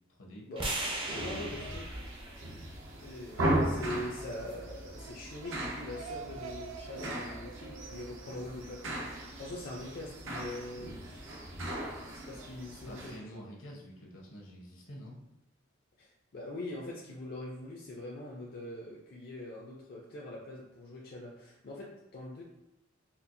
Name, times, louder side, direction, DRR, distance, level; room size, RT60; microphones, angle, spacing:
voice 1, 0.1-0.5 12.9-15.2, equal, 75° left, -2 dB, 0.9 m, -48 dB
sound 1, 0.6-4.8, right 2 dB, 25° right, 0.5 m, -40 dB
sound 2, 0.7-13.2, right 1 dB, 70° right, 0.7 m, -38 dB
voice 2, 1.1-1.9 3.0-11.0 12.1-13.5 16.0-22.4, left 1 dB, 50° left, -4 dB, 0.5 m, -43 dB
sound 3, 4.7-9.5, right 6 dB, 90° right, 0.3 m, -48 dB
4.3 x 2.0 x 2.6 m, 0.95 s
head